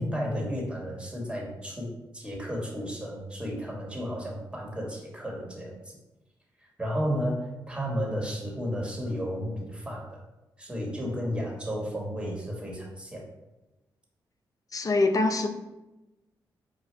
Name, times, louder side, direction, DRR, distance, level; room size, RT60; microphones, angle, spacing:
voice 1, 0.0-5.9 6.8-10.2 10.6-13.3, equal, 10° right, -2 dB, 1.4 m, -33 dB
voice 2, 14.7-15.5, left 2 dB, 40° left, 6 dB, 0.5 m, -24 dB
4.9 x 2.4 x 3.3 m, 1.0 s
supercardioid pair, 50°, 9 cm